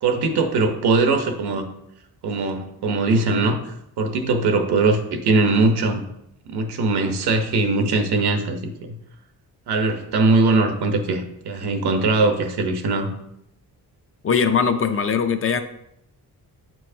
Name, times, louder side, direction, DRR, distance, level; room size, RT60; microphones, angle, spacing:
voice 1, 0.0-1.6 2.2-6.0 6.5-9.0 9.7-13.1, right 3 dB, 80° right, 6 dB, 1.0 m, -21 dB
voice 2, 14.2-15.6, left 6 dB, 35° left, 8 dB, 0.4 m, -20 dB
8.2 x 4.5 x 2.7 m, 0.80 s
wide cardioid pair, 160°, 38 cm